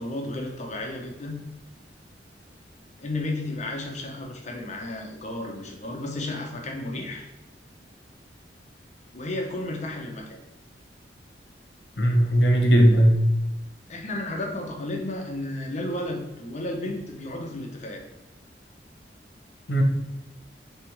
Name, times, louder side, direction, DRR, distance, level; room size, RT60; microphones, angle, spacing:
voice 1, 0.0-1.4 3.0-7.3 9.1-10.4 13.9-18.0, left 1 dB, 40° left, 2 dB, 0.7 m, -33 dB
voice 2, 12.0-13.3 19.7-19.8, equal, 75° left, 3 dB, 0.9 m, -18 dB
3.5 x 3.3 x 4.5 m, 0.98 s
head